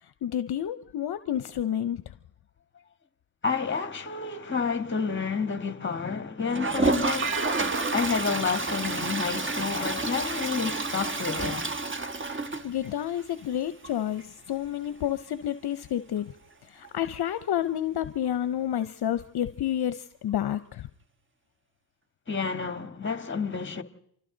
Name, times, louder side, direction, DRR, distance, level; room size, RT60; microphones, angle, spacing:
voice 1, 0.0-2.0 12.3-16.3 16.7-20.9, left 11 dB, 55° left, 0.8 m, -30 dB
voice 2, 3.4-7.4 7.9-11.7 22.3-23.8, left 5 dB, 25° left, 1.7 m, -30 dB
Toilet flush, 6.5-13.2 13.5-13.6 13.8-13.9 14.2-14.3 16.8-16.9 18.2-18.3, right 3 dB, 25° right, 1.4 m, -29 dB
sound 1, 7.2-10.0, right 8 dB, 90° right, 1.3 m, -41 dB
29.0 x 25.0 x 3.9 m
supercardioid pair, 65°, 47 cm